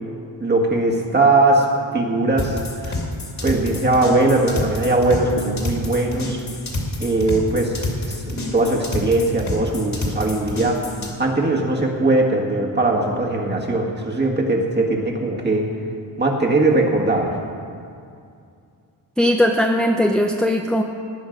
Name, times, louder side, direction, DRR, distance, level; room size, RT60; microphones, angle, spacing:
voice 1, 0.4-1.7 1.9-3.0 3.4-6.4 7.0-7.8 8.1-10.8 11.2-15.7 16.2-17.4, right 2 dB, 25° right, 0 dB, 1.8 m, -20 dB
sound 1, 2.4-11.1, left 2 dB, 40° left, 2.4 m, -28 dB
voice 2, 19.2-20.8, left 1 dB, ahead, 2 dB, 0.5 m, -18 dB
19.0 x 9.4 x 5.2 m, 2.4 s
wide cardioid pair, 155°, 44 cm